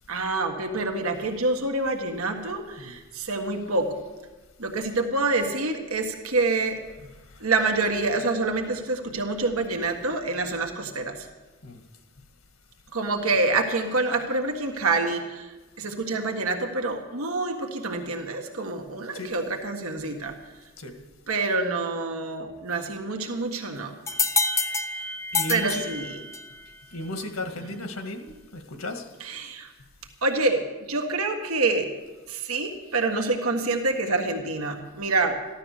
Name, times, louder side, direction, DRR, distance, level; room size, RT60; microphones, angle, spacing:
voice 1, 0.1-3.9 4.6-6.8 7.4-11.3 12.9-20.3 21.3-23.9 25.5-26.2 27.7-27.8 29.2-29.7 30.2-31.9 32.3-35.4, right 3 dB, 85° right, 4 dB, 1.6 m, -27 dB
sound 1, 24.1-26.6, left 4 dB, 15° left, 0.6 m, -27 dB
voice 2, 25.3-25.9 26.9-29.1, left 1 dB, 85° left, 6 dB, 1.8 m, -35 dB
15.0 x 12.0 x 6.7 m, 1.2 s
head